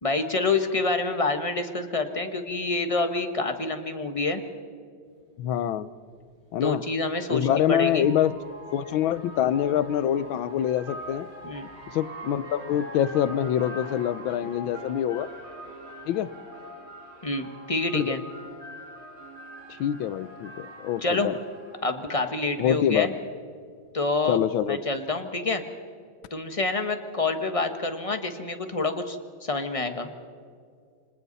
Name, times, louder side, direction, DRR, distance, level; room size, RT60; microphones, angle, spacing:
voice 1, 0.0-4.4 6.6-8.1 11.4-11.7 17.2-18.2 21.0-21.3 21.8-23.1 23.9-24.4 24.7-25.6 26.3-30.1, left 3 dB, 20° left, 7 dB, 1.2 m, -27 dB
sound 1, 5.3-5.4 6.9-22.5, equal, 50° right, 4.3 m, -43 dB
voice 2, 5.4-5.9 6.5-6.8 7.3-8.3 8.7-11.3 11.9-15.3 16.0-16.3 17.9-18.1 19.7-21.3 22.6-23.1 24.3-24.8, left 10 dB, 75° left, 16 dB, 1.5 m, -25 dB
28.5 x 25.5 x 4.1 m, 2.2 s
omnidirectional pair, 2.2 m